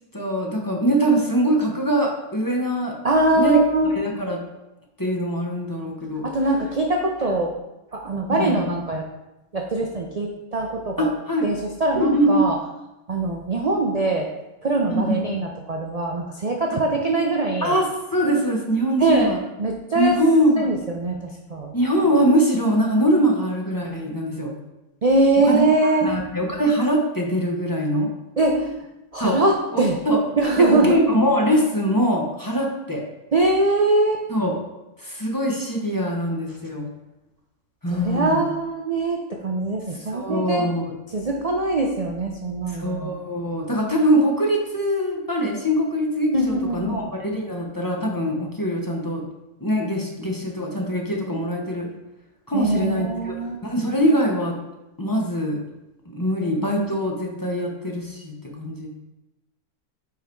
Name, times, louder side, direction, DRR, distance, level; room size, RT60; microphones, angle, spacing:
voice 1, 0.1-3.0 3.3-3.6 3.9-4.4 5.0-6.2 8.3-8.6 11.0-11.5 11.9-12.4 14.8-15.2 17.6-17.9 18.1-19.4 19.9-20.7 21.7-24.5 25.5-25.6 26.0-28.1 29.2-29.4 29.7-30.2 30.6-33.0 34.3-34.5 35.0-36.9 37.8-38.4 40.1-40.9 42.7-49.2 49.6-51.9 52.5-53.3 53.6-54.5 55.0-55.6 56.1-58.9, equal, 15° left, -1 dB, 0.8 m, -22 dB
voice 2, 3.0-3.9 6.2-7.5 7.9-9.0 9.5-11.1 11.4-12.6 13.1-14.3 14.6-17.8 19.0-20.2 20.6-21.7 25.0-26.1 28.4-28.7 29.1-30.0 30.4-31.0 33.3-34.3 37.9-40.7 41.1-43.2 46.3-47.0 52.5-53.6, right 2 dB, 85° right, 1 dB, 0.3 m, -22 dB
5.5 x 4.8 x 4.6 m, 0.96 s
omnidirectional pair, 1.6 m